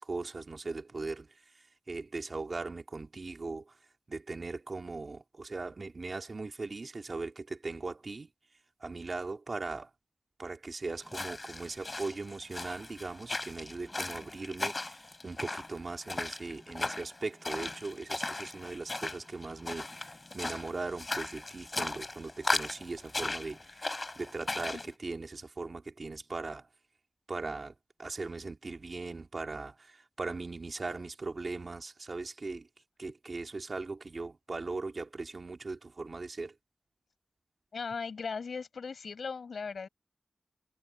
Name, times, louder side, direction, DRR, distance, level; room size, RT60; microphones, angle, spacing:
voice 1, 0.0-3.8 4.1-8.3 8.8-9.9 10.4-26.7 27.3-32.7 33.0-36.5, right 3 dB, 55° right, 2.6 m, -39 dB
sound 1, 11.0-24.9, left 2 dB, 35° left, 5.0 m, -37 dB
voice 2, 37.7-39.9, left 5 dB, 85° left, 6.3 m, -38 dB
wide cardioid pair, 65°, 0 cm